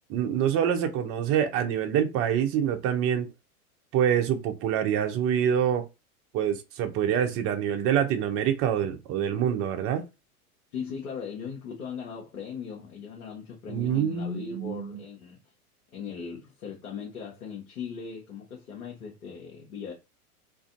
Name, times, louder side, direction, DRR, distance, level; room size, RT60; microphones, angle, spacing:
voice 1, 0.1-3.3 3.9-5.9 6.3-10.0 13.7-15.0, right 9 dB, 30° right, 0.6 m, -26 dB
voice 2, 10.7-15.4 15.9-19.9, left 6 dB, 75° left, 1.0 m, -39 dB
2.6 x 2.5 x 2.5 m
hypercardioid pair, 100°, 44 cm